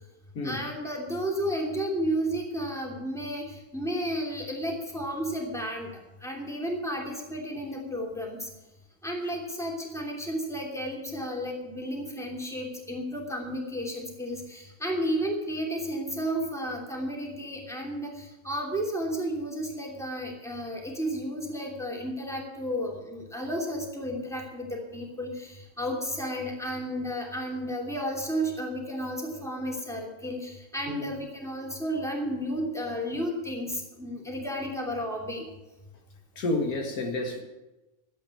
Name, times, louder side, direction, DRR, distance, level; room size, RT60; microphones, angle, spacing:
voice 1, 0.4-8.5 9.0-35.4, equal, ahead, 2.8 m, -32 dB
voice 2, 36.4-37.4, left 2 dB, 85° left, 2.2 m, -29 dB
12.5 x 8.5 x 8.4 m
omnidirectional pair, 1.5 m